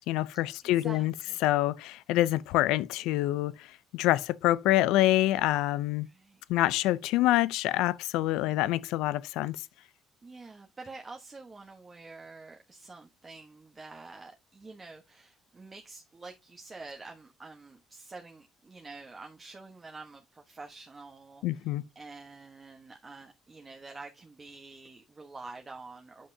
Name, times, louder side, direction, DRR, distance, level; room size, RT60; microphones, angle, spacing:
voice 1, 0.1-1.1 1.4-3.7 3.9-6.1 6.5-9.6 21.4-21.8, left 15 dB, 85° left, 0.4 m, -26 dB
voice 2, 0.6-1.4 6.0-6.4 8.3-8.6 10.2-21.4 21.9-26.3, right 3 dB, 25° right, 1.2 m, -47 dB
8.4 x 5.6 x 2.7 m
cardioid pair, 95°, 0 cm